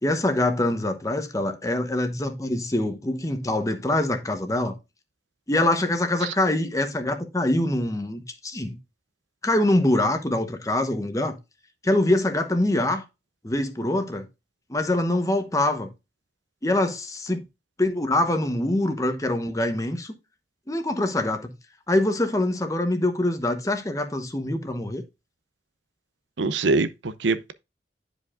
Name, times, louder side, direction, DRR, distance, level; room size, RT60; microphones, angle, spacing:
voice 1, 0.0-4.7 5.5-8.8 9.4-11.3 11.8-13.0 13.4-14.3 14.7-15.9 16.6-17.4 17.8-20.1 20.7-21.5 21.9-25.0, left 1 dB, 20° left, 0.9 m, -24 dB
voice 2, 26.4-27.5, right 3 dB, 90° right, 0.7 m, -24 dB
10.5 x 5.0 x 2.5 m
head